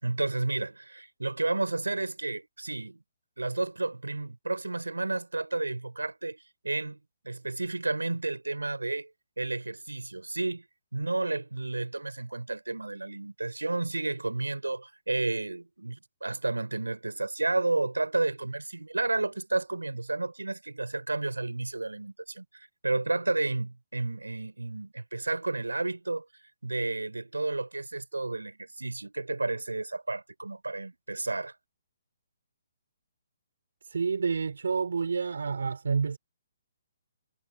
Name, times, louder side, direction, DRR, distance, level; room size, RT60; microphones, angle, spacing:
voice 1, 0.0-3.0 3.4-7.0 7.2-9.1 9.4-10.6 10.9-26.2 26.6-31.5, right 2 dB, 90° right, 6.0 m, -31 dB
voice 2, 33.9-36.2, right 5 dB, 70° right, 4.2 m, -29 dB
figure-of-eight pair, 135°, 0 cm